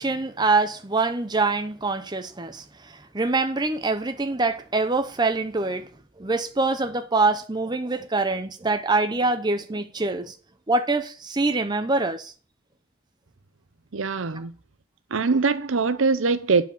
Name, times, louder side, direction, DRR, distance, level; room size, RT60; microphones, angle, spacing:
voice 1, 0.0-5.9 6.2-10.3 10.7-12.3, right 3 dB, 20° right, 0.7 m, -24 dB
voice 2, 13.9-14.5 15.1-16.6, right 4 dB, 70° right, 0.7 m, -22 dB
8.9 x 5.0 x 7.0 m
head